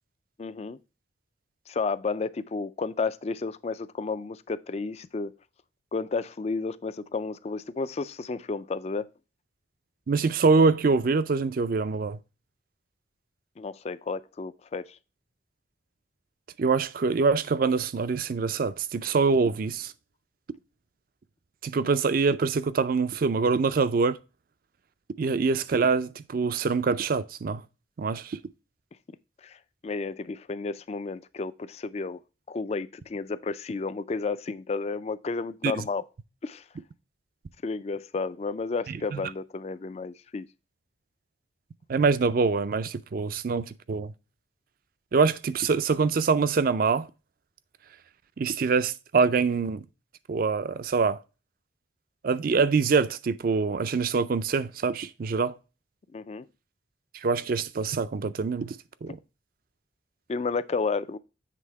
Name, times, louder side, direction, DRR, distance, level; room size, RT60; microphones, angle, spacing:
voice 1, 0.4-0.8 1.7-5.3 5.9-9.1 13.6-15.0 29.4-32.2 32.5-36.0 36.4-36.6 37.6-40.5 56.1-56.5 60.3-61.2, left 4 dB, 35° left, 0.3 m, -32 dB
voice 2, 10.1-12.2 16.6-19.9 21.6-24.2 25.2-27.6 28.0-28.4 35.6-35.8 39.1-39.2 41.9-44.1 45.1-47.1 48.4-49.8 50.3-51.2 52.2-55.5 57.1-58.8 59.0-59.2, right 4 dB, 45° right, 0.4 m, -24 dB
7.6 x 3.5 x 4.6 m
head